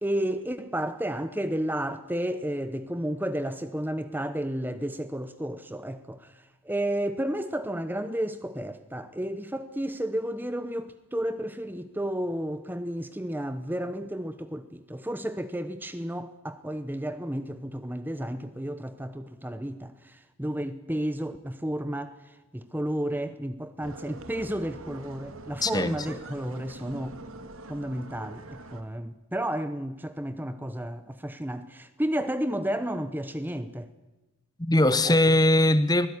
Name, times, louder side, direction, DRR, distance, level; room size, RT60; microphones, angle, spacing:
voice 1, 0.0-6.3 6.6-22.2 22.5-27.2 27.7-33.9 34.9-35.2, right 1 dB, 10° right, 0.8 m, -32 dB
sound 1, 23.8-28.8, right 2 dB, 80° right, 2.4 m, -44 dB
voice 2, 25.6-26.2 34.6-36.1, left 1 dB, 20° left, 1.0 m, -21 dB
23.5 x 16.0 x 9.8 m
head